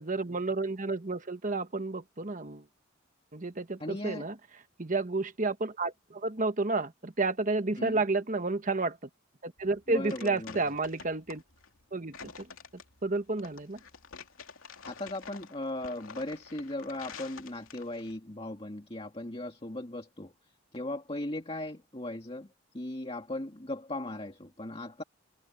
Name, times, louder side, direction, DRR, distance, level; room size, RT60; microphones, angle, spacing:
voice 1, 0.0-2.6 3.3-4.4 4.8-9.0 9.4-11.4 11.9-12.5 13.0-13.8, right 3 dB, 40° right, 1.3 m, -31 dB
voice 2, 3.8-4.3 7.8-8.0 9.9-10.6 14.9-20.3 20.7-22.5 22.7-25.0, left 1 dB, 25° left, 2.0 m, -38 dB
sound 1, 9.6-18.2, left 5 dB, 80° left, 2.7 m, -48 dB
head